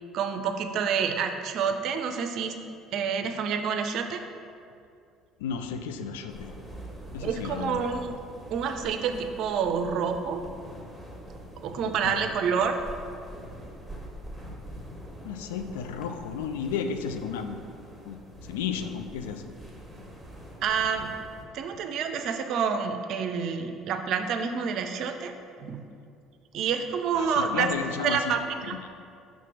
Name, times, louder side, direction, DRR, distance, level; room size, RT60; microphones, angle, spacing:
voice 1, 0.1-2.5 2.9-4.2 7.2-8.2 8.5-10.4 11.6-12.7 20.6-21.1 21.5-25.3 25.6-25.8 26.5-27.7 28.0-28.7, right 6 dB, 60° right, 7 dB, 0.5 m, -28 dB
voice 2, 5.4-6.5 7.1-7.8 11.9-12.3 15.2-17.6 18.0-19.5 27.1-28.3 28.7-28.9, left 7 dB, 75° left, 7 dB, 0.4 m, -33 dB
sound 1, 6.3-21.4, equal, 5° left, 1.6 m, -44 dB
5.9 x 3.6 x 6.0 m, 2.4 s
hypercardioid pair, 60°, 0 cm